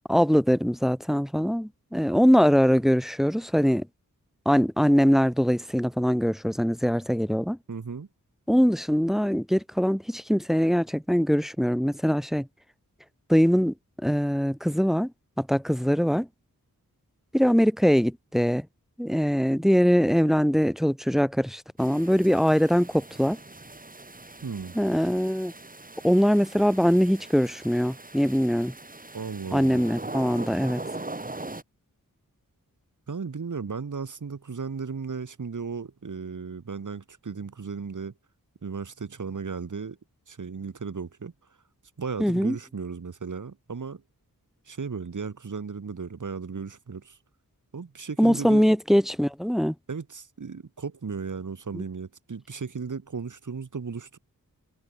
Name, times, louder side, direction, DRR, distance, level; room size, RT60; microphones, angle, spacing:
voice 1, 0.1-3.9 4.5-7.6 8.5-12.5 13.3-13.7 14.0-15.1 15.4-16.3 17.3-18.7 19.0-23.4 24.7-25.5 26.0-28.7 29.5-30.8 42.2-42.6 48.2-49.7 51.7-51.8, equal, ahead, 0.9 m, -22 dB
voice 2, 7.7-8.1 24.4-24.8 29.1-29.8 33.1-38.1 38.6-40.0 40.3-41.3 42.0-44.0 44.7-47.2 47.7-48.7 49.9-54.2, right 5 dB, 60° right, 1.7 m, -35 dB
sound 1, 21.8-31.6, right 2 dB, 25° right, 2.1 m, -41 dB
wide cardioid pair, 60°, 34 cm